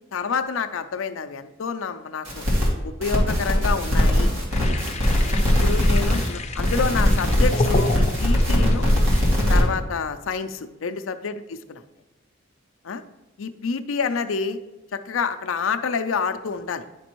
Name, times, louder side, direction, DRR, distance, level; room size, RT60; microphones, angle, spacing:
voice 1, 0.1-2.4 2.8-4.8 5.6-7.9 8.2-8.9 9.5-11.4 12.8-13.0 13.4-14.6 14.9-16.9, left 5 dB, 80° left, 9 dB, 0.5 m, -28 dB
sound 1, 2.2-2.7 3.0-6.3 6.6-9.6, left 1 dB, 75° right, 2.1 m, -20 dB
sound 2, 4.5-9.6, left 2 dB, 35° left, 0.6 m, -30 dB
9.9 x 5.2 x 3.0 m, 1.1 s
head